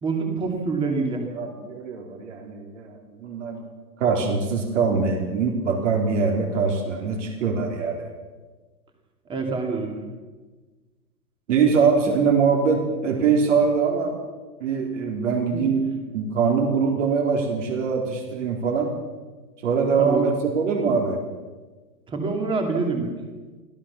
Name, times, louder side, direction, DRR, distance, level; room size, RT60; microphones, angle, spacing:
voice 1, 0.0-1.3 9.3-10.0 15.5-15.6 20.0-20.2 22.1-23.1, right 4 dB, 10° right, 3 dB, 2.6 m, -26 dB
voice 2, 1.3-3.6 4.0-8.1 11.5-14.2 14.6-15.8 16.1-18.9 19.6-21.2, right 5 dB, 45° right, 1 dB, 4.2 m, -23 dB
24.5 x 16.5 x 7.2 m, 1.3 s
hypercardioid pair, 160°, 49 cm